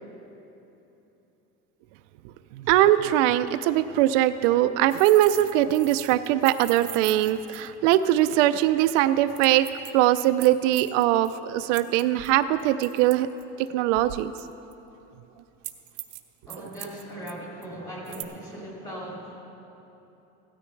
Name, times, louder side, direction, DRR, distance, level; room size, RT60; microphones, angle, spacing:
voice 1, 2.5-9.7 9.9-13.3 13.6-14.3, right 13 dB, 80° right, 11 dB, 0.5 m, -21 dB
sound 1, 4.9-8.3 8.6-8.7 9.4-11.3 11.7-13.7 14.4-14.7 15.6-16.2 16.5-17.3 17.6-17.7 18.1-18.2, right 17 dB, 50° right, 0.8 m, -40 dB
voice 2, 16.5-19.4, equal, 10° left, -4 dB, 2.4 m, -39 dB
16.0 x 13.0 x 3.2 m, 3.0 s
cardioid pair, 155°, 36 cm